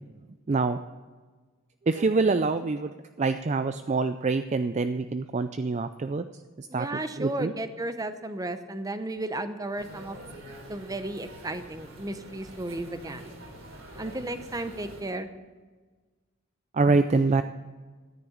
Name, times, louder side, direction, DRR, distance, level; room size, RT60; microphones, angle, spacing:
voice 1, 0.5-0.8 1.9-6.2 6.6-7.5 16.7-17.4, right 3 dB, 35° right, 10 dB, 0.4 m, -25 dB
voice 2, 6.7-10.2 10.7-13.3 14.0-15.3, right 1 dB, 15° right, 10 dB, 0.8 m, -34 dB
sound 1, 9.8-15.0, right 1 dB, 70° right, 3.5 m, -46 dB
13.5 x 10.0 x 7.1 m, 1.4 s
head